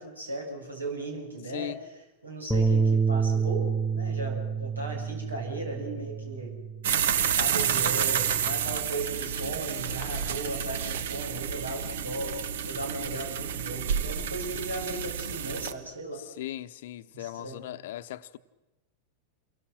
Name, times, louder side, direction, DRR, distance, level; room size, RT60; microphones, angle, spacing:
voice 1, 0.0-1.8 2.2-6.6 7.3-12.4 12.7-16.2 17.1-17.6, right 2 dB, 80° right, 7.2 m, -36 dB
Bass guitar, 2.5-7.0 7.4-8.8, right 5 dB, ahead, 1.7 m, -29 dB
sound 1, 6.8-15.7, right 8 dB, 60° right, 1.2 m, -30 dB
voice 2, 16.4-18.4, left 14 dB, 55° left, 1.0 m, -38 dB
29.5 x 23.5 x 6.3 m
figure-of-eight pair, 90°, 0 cm